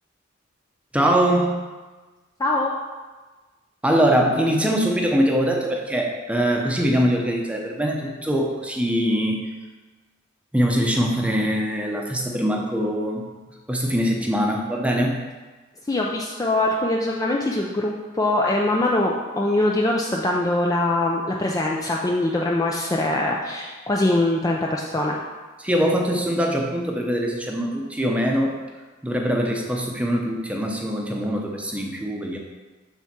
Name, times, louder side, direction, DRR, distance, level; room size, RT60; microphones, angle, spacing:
voice 1, 0.9-1.6 3.8-9.4 10.5-13.2 13.7-15.2 25.6-28.6 29.0-32.4, equal, 5° right, 0 dB, 0.7 m, -22 dB
voice 2, 2.4-2.7 15.9-25.2, left 2 dB, 15° left, -1 dB, 0.4 m, -23 dB
7.1 x 3.5 x 6.0 m, 1.3 s
head